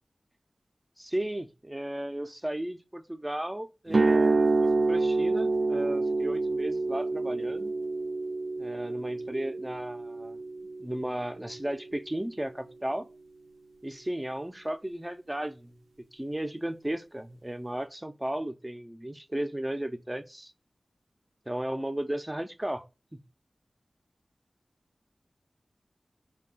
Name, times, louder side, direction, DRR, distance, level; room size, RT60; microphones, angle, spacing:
voice 1, 1.0-4.5 4.9-7.7 8.6-10.4 10.8-13.1 13.8-15.7 16.0-20.5 21.5-22.8 23.1-23.2, right 1 dB, 20° right, 0.5 m, -35 dB
sound 1, 3.9-11.9, right 3 dB, 75° right, 0.4 m, -28 dB
5.2 x 2.3 x 3.7 m
cardioid pair, 45°, 0 cm